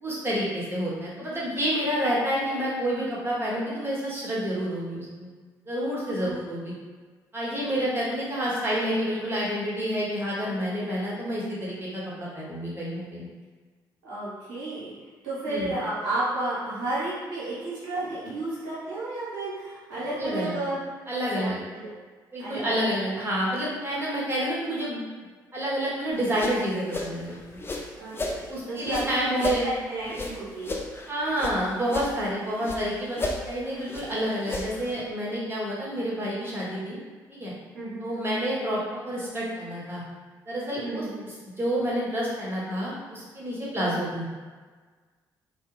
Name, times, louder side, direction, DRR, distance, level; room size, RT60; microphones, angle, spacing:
voice 1, 0.0-5.3 5.7-6.7 7.3-13.3 15.5-15.7 20.2-20.6 21.1-21.6 22.3-25.0 25.5-27.6 28.5-29.7 31.1-37.0 37.3-37.5 38.0-40.0 40.5-44.3, equal, 20° right, -6 dB, 1.1 m, -29 dB
voice 2, 14.0-14.9 15.2-20.8 21.3-21.9 22.4-23.1 28.0-30.7 37.7-38.2 40.8-41.2 43.8-44.0, right 2 dB, 75° right, -9 dB, 0.9 m, -32 dB
sound 1, 26.1-28.4 28.8-31.6 31.8-32.8 33.1-34.9, left 2 dB, 20° left, 0.4 m, -34 dB
2.3 x 2.2 x 3.1 m, 1.4 s
figure-of-eight pair, 45°, 11 cm